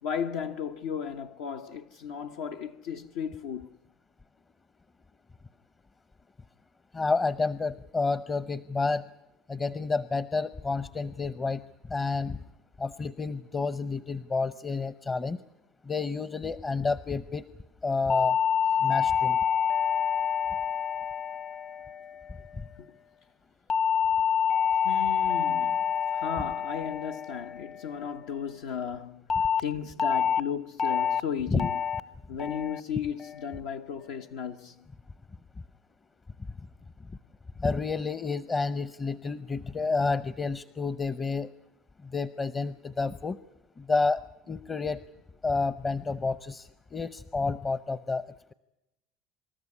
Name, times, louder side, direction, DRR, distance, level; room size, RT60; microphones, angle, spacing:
voice 1, 0.0-3.7 22.8-22.9 24.8-31.8 32.3-34.9, left 7 dB, 85° left, 1.0 m, -35 dB
voice 2, 6.9-9.1 9.5-12.4 12.8-15.4 15.8-17.5 17.8-18.4 18.8-19.4 31.5-31.6 37.6-41.5 42.0-43.4 43.8-45.0 45.4-48.3, left 4 dB, 25° left, 0.7 m, -30 dB
sound 1, 18.1-22.6 23.7-28.2 29.3-29.6 30.0-30.4 30.8-31.2 31.6-32.0 32.4-32.8 33.2-33.6, left 7 dB, 40° left, 1.0 m, -27 dB
27.5 x 13.5 x 9.7 m
supercardioid pair, 100°, 0 cm